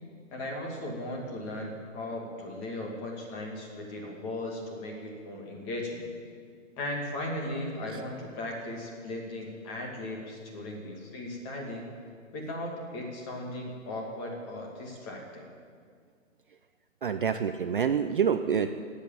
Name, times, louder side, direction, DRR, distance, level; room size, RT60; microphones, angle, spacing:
voice 1, 0.3-6.0 6.8-11.9 12.3-15.5, left 1 dB, 20° left, 0 dB, 2.5 m, -37 dB
voice 2, 17.0-18.7, right 7 dB, 40° right, 8 dB, 0.5 m, -27 dB
18.0 x 8.4 x 9.0 m, 2.1 s
hypercardioid pair, 160°, 40 cm